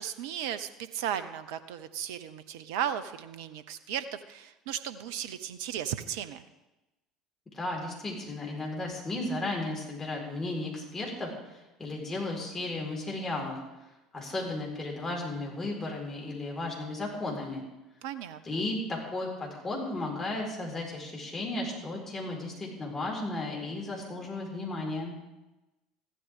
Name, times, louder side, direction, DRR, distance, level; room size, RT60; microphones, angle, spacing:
voice 1, 0.0-6.4 18.0-18.6, right 9 dB, 60° right, 12 dB, 0.7 m, -36 dB
voice 2, 7.5-11.3 11.8-13.6 14.1-17.6 18.4-25.1, left 2 dB, 20° left, -2 dB, 4.6 m, -34 dB
15.0 x 12.5 x 3.7 m, 1.0 s
figure-of-eight pair, 65°, 2 cm